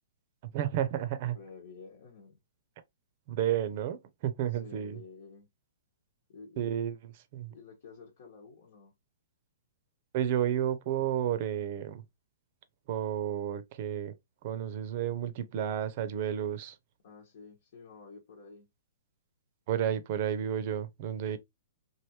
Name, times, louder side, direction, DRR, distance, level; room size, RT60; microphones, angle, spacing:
voice 1, 0.4-1.4 3.3-5.0 6.6-7.0 7.3-7.5 10.1-12.0 12.9-14.1 14.4-16.8 19.7-21.4, right 10 dB, 45° right, 0.6 m, -31 dB
voice 2, 1.3-2.4 4.5-5.5 6.3-6.7 7.5-8.9 17.0-18.7, left 4 dB, 60° left, 1.1 m, -50 dB
3.2 x 2.5 x 2.9 m
hypercardioid pair, 140°, 0 cm